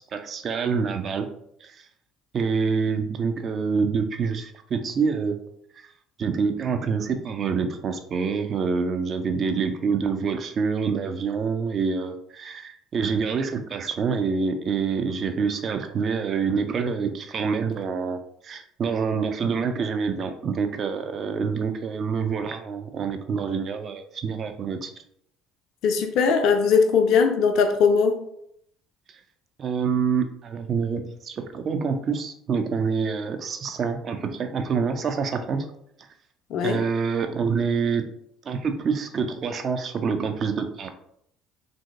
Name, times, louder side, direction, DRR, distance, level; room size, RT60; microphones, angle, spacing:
voice 1, 0.1-1.3 1.6-1.8 2.3-5.4 5.8-5.9 6.2-18.2 18.4-24.9 29.6-35.7 36.6-38.0 38.4-40.9, right 5 dB, 45° right, 7 dB, 0.4 m, -26 dB
voice 2, 25.8-28.2 36.5-36.8, left 5 dB, 55° left, 5 dB, 0.3 m, -20 dB
3.0 x 2.5 x 2.4 m, 0.71 s
figure-of-eight pair, 55°, 0 cm